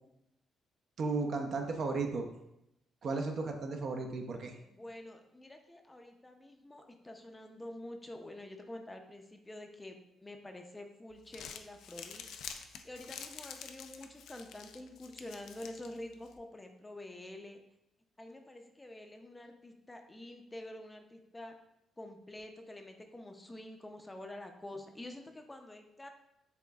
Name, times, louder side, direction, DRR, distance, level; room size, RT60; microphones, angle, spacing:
voice 1, 1.0-2.2 3.0-4.6, right 3 dB, 60° right, 4 dB, 0.6 m, -34 dB
voice 2, 4.7-12.3 12.8-17.6 18.2-21.5 22.0-26.1, left 1 dB, 15° left, 5 dB, 0.5 m, -48 dB
Crumpling crinkling, 11.1-16.4, left 7 dB, 80° left, 0.3 m, -48 dB
6.9 x 2.5 x 2.3 m, 0.85 s
cardioid pair, 90°, 0 cm